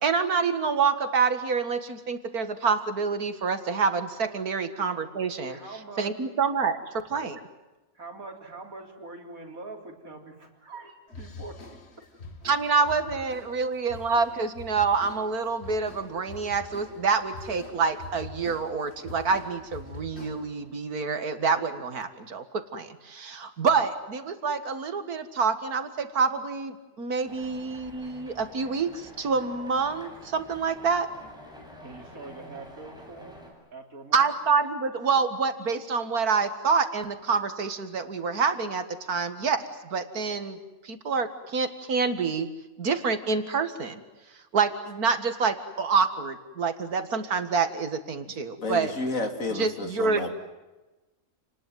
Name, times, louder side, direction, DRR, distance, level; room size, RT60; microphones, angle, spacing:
voice 1, 0.0-5.6 6.0-7.4 12.4-31.1 34.1-40.6 40.8-42.5 42.8-44.0 44.5-48.9 49.5-50.3, right 5 dB, 85° right, 10 dB, 2.3 m, -27 dB
voice 2, 5.5-6.1 7.9-11.6 12.0-12.2 31.8-33.4 33.7-34.3, right 3 dB, 65° right, 3 dB, 4.2 m, -43 dB
sound 1, 11.1-20.7, left 3 dB, 45° left, 2.4 m, -45 dB
sound 2, 27.2-33.5, equal, 5° right, 7.5 m, -48 dB
voice 3, 48.6-50.3, left 2 dB, 60° left, 5 dB, 3.4 m, -31 dB
29.0 x 20.0 x 9.3 m, 1.1 s
omnidirectional pair, 1.6 m